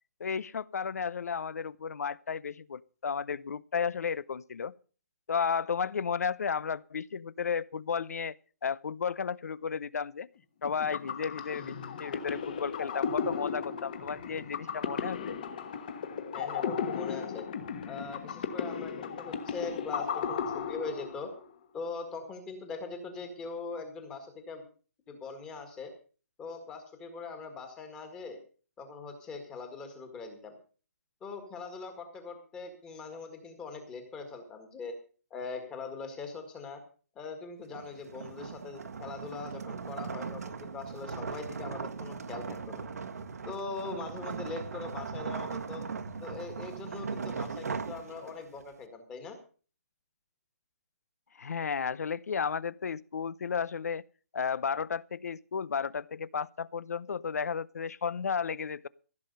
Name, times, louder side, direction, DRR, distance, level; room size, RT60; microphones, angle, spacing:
voice 1, 0.2-4.7 5.3-8.4 8.6-10.3 10.6-15.4 51.4-54.0 54.3-58.9, left 6 dB, 75° left, 0.7 m, -33 dB
sound 1, 10.6-21.5, left 6 dB, 30° left, 1.4 m, -35 dB
voice 2, 16.3-17.4 17.9-20.4 20.7-21.3 21.7-24.6 25.1-25.9 26.4-28.4 28.8-30.5 31.2-35.0 35.3-36.8 37.1-42.8 43.4-45.8 46.2-49.4, left 4 dB, 10° left, 1.7 m, -41 dB
sound 2, 37.7-48.6, right 5 dB, 75° right, 1.5 m, -39 dB
15.5 x 7.5 x 6.7 m
hypercardioid pair, 175°, 9 cm